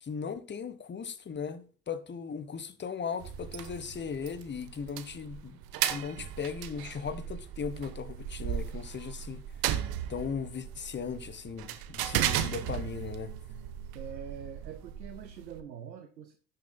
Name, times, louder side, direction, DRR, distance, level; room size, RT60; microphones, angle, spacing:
voice 1, 0.0-9.4 10.1-13.3, left 6 dB, 20° left, 1.3 m, -38 dB
sound 1, 3.2-15.6, right 11 dB, 45° right, 1.2 m, -36 dB
voice 2, 13.9-16.4, right 8 dB, 80° right, 1.0 m, -44 dB
16.5 x 7.0 x 2.3 m
figure-of-eight pair, 65°, 50 cm